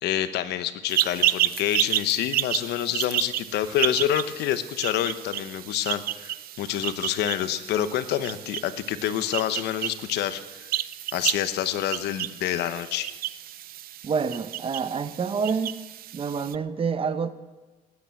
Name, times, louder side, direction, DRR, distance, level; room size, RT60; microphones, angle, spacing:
voice 1, 0.0-10.7 11.1-13.1, left 11 dB, 80° left, 12 dB, 1.0 m, -27 dB
sound 1, 0.9-16.6, right 13 dB, 60° right, 0.5 m, -31 dB
voice 2, 14.0-15.8 16.1-17.3, right 5 dB, 35° right, 12 dB, 1.0 m, -27 dB
18.0 x 9.8 x 7.6 m, 1.2 s
cardioid pair, 110°, 17 cm